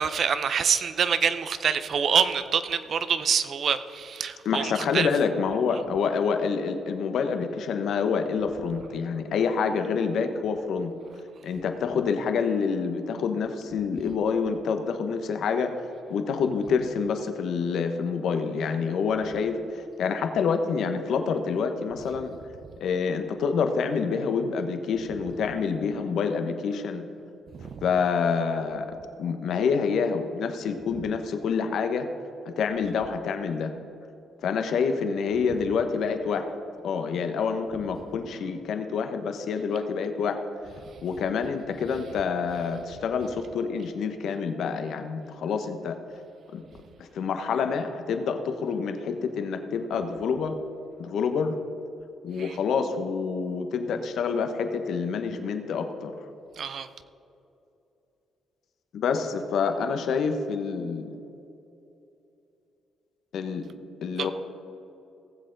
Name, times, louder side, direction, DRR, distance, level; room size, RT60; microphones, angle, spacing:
voice 1, 0.0-5.1 27.5-27.8 52.4-52.5 56.6-56.9 64.2-64.3, right 7 dB, 55° right, 12 dB, 0.6 m, -26 dB
voice 2, 4.4-10.9 11.4-15.7 16.1-22.3 22.8-27.0 27.8-28.9 29.2-32.1 32.4-33.7 34.4-36.5 36.8-40.4 41.0-45.9 46.5-46.6 47.0-50.5 51.0-51.5 52.2-56.1 58.9-61.2 63.3-63.6 64.0-64.3, left 5 dB, 70° left, 7 dB, 1.0 m, -27 dB
18.0 x 7.7 x 3.9 m, 2.8 s
cardioid pair, 90°, 0 cm